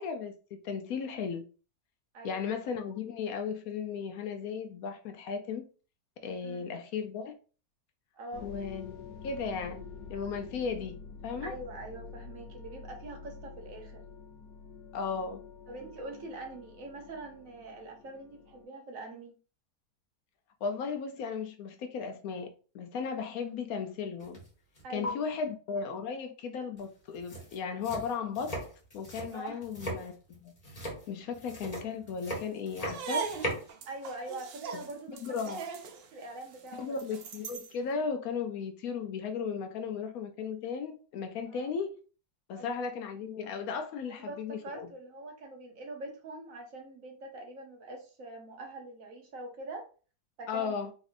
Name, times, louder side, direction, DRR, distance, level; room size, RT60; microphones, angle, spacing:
voice 1, 0.0-1.4 2.2-5.7 6.2-7.3 8.4-9.8 10.1-11.0 11.2-11.5 14.9-15.4 20.6-24.4 24.9-28.5 28.9-30.5 31.1-33.3 34.7-34.8 35.2-35.6 36.8-42.0 42.5-44.9 50.5-50.9, left 6 dB, 70° left, 1.0 m, -36 dB
voice 2, 8.1-8.5 11.4-14.0 15.7-19.3 24.8-25.2 29.3-29.6 33.9-35.6 36.1-37.0 41.5-41.7 42.5-42.8 44.3-49.8 50.4-50.7, right 2 dB, 60° right, 1.2 m, -43 dB
sound 1, 8.3-18.6, left 5 dB, 90° left, 1.3 m, -48 dB
sound 2, 24.2-24.5 24.7-25.1 26.8-26.9 27.1-33.7, equal, 25° left, 1.1 m, -39 dB
sound 3, 32.7-37.8, right 6 dB, 90° right, 0.5 m, -39 dB
4.1 x 2.7 x 2.5 m
omnidirectional pair, 1.7 m